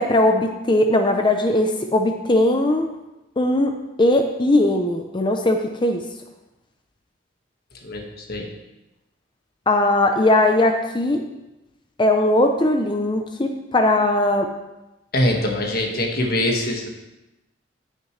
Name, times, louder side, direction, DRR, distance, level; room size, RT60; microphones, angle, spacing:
voice 1, 0.0-2.9 3.4-6.0 9.7-11.2 12.0-14.5, left 1 dB, 25° left, 5 dB, 0.6 m, -19 dB
voice 2, 7.8-8.5 15.1-16.9, left 1 dB, 55° left, 1 dB, 1.6 m, -23 dB
15.5 x 6.6 x 3.2 m, 1.0 s
head